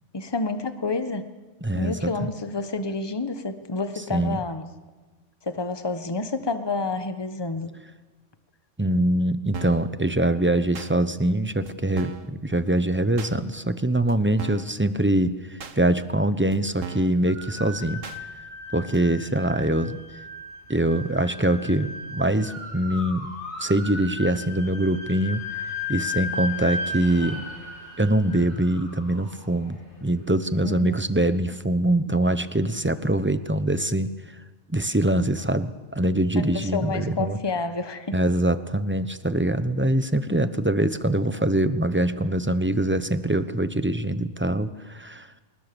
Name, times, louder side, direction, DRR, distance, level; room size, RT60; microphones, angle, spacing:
voice 1, 0.1-1.3 1.7-4.7 5.4-7.7 30.6-31.0 36.3-38.2, left 3 dB, 20° left, 9 dB, 1.3 m, -29 dB
voice 2, 1.6-2.1 4.1-4.4 8.8-18.0 18.7-20.0 20.7-23.3 23.6-25.4 25.9-27.4 28.0-34.1 34.7-37.4 38.1-45.3, right 1 dB, 10° right, 12 dB, 0.8 m, -23 dB
sound 1, 9.5-9.9 10.7-10.9 11.7-11.8 12.0-12.3 13.2-13.3 14.1-14.2 14.4-14.7 15.6-15.8 16.5-16.6 16.8-17.2 18.0-18.2 18.9-19.0, right 7 dB, 85° right, 1.6 m, -37 dB
sound 2, 17.3-30.3, left 2 dB, 60° left, 4.9 m, -36 dB
26.0 x 20.5 x 7.0 m, 1.3 s
omnidirectional pair, 1.3 m